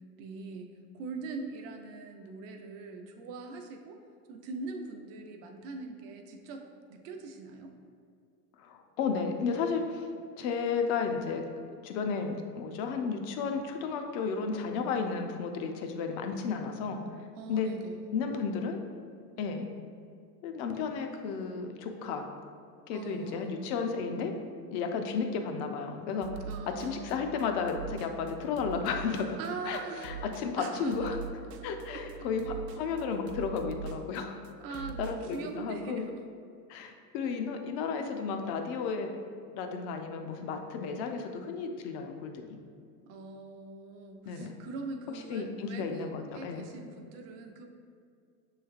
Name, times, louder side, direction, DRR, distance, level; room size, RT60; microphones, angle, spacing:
voice 1, 0.2-4.0 4.3-6.6 6.9-7.7 17.4-18.0 22.9-23.6 26.5-27.2 29.4-30.1 30.5-31.2 31.6-31.7 31.9-32.0 34.6-36.2 43.1-47.7, right 4 dB, 35° right, 4 dB, 0.4 m, -42 dB
voice 2, 8.6-10.1 10.4-11.5 11.8-17.0 17.5-17.7 18.1-18.8 19.4-19.7 20.4-22.3 22.9-24.3 24.7-26.4 26.7-29.4 29.7-31.2 31.6-34.4 34.7-36.1 36.7-39.1 39.5-42.6 44.2-44.5 45.3-46.6, left 5 dB, 45° left, 5 dB, 0.5 m, -33 dB
sound 1, 26.2-35.4, right 7 dB, 85° right, 0.5 m, -43 dB
6.1 x 3.2 x 2.4 m, 2.3 s
hypercardioid pair, 110°, 47 cm